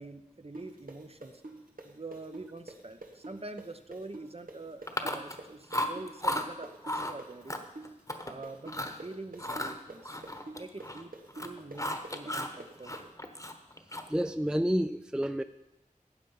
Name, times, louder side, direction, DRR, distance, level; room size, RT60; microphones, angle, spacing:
voice 1, 0.0-1.4 1.8-7.6 8.2-10.2 10.6-11.1 11.4-13.1, right 2 dB, 45° right, 8 dB, 0.9 m, -45 dB
sound 1, 0.5-8.2 8.4-13.0, right 2 dB, 90° right, 1.6 m, -45 dB
Chewing mastication, 4.9-5.4 5.7-6.5 6.8-7.1 7.5-8.3 8.7-9.0 9.4-11.0 11.3-12.6 12.8-14.2, left 1 dB, 25° left, 1.2 m, -34 dB
voice 2, 14.1-15.4, equal, 5° right, 10 dB, 0.4 m, -29 dB
13.5 x 8.8 x 5.6 m, 0.95 s
wide cardioid pair, 45°, 14 cm